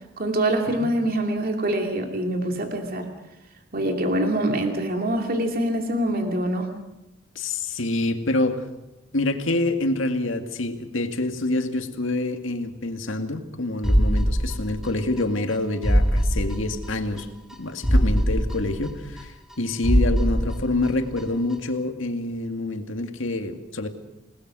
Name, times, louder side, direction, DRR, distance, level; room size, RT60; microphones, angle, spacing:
voice 1, 0.2-3.1 3.7-6.7, right 1 dB, 50° right, 3 dB, 2.7 m, -24 dB
voice 2, 7.4-8.6 9.1-17.3 17.6-23.9, left 2 dB, 80° left, 6 dB, 2.2 m, -26 dB
sound 1, 13.8-15.2 15.5-15.6 15.8-17.2 17.5-17.6 17.8-19.5 19.8-21.2 21.5-21.6, equal, 5° right, 2.0 m, -22 dB
28.5 x 19.0 x 6.3 m, 0.95 s
head